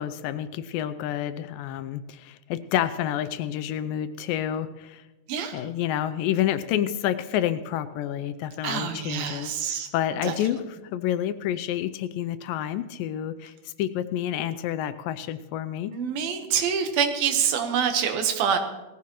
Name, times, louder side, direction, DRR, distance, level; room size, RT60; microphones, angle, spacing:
voice 1, 0.0-5.0 5.5-15.9, left 11 dB, 80° left, 12 dB, 2.2 m, -29 dB
voice 2, 5.3-5.6 8.6-9.9 10.2-10.3 15.9-18.6, right 7 dB, 85° right, 6 dB, 3.0 m, -26 dB
18.5 x 14.0 x 3.0 m, 1.1 s
omnidirectional pair, 4.1 m